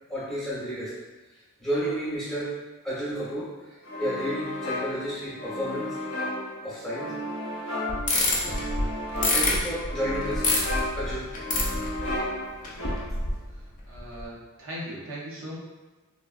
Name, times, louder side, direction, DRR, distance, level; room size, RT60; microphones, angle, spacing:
voice 1, 0.1-0.9 1.6-2.6 2.8-3.5 4.0-5.9 6.6-7.1 9.3-10.5 10.9-11.3, equal, ahead, -9 dB, 0.8 m, -31 dB
sound 1, 3.8-13.3, left 1 dB, 60° left, 0.9 m, -34 dB
sound 2, 7.9-12.3 12.6-13.6 14.0-14.2, left 2 dB, 35° left, 0.4 m, -27 dB
voice 2, 13.5-15.6, equal, 60° right, -5 dB, 0.6 m, -39 dB
3.4 x 2.1 x 2.4 m, 1.2 s
head